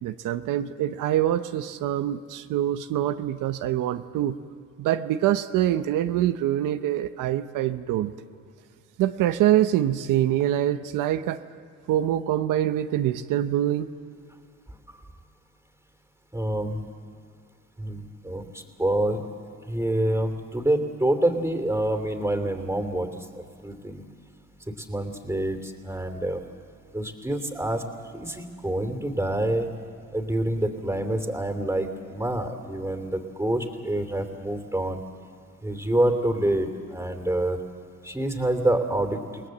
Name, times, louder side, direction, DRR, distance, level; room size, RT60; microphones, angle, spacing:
voice 1, 0.0-4.4 4.8-8.1 9.0-11.4 11.9-13.9, right 12 dB, 85° right, 9 dB, 0.8 m, -25 dB
voice 2, 16.3-16.8 17.8-19.2 19.7-23.1 23.6-24.0 24.8-26.4 26.9-27.8 28.1-29.7 30.1-35.0 35.6-37.6 38.0-39.4, right 1 dB, 10° right, 6 dB, 2.9 m, -27 dB
29.0 x 19.0 x 7.9 m, 2.3 s
cardioid pair, 85°, 31 cm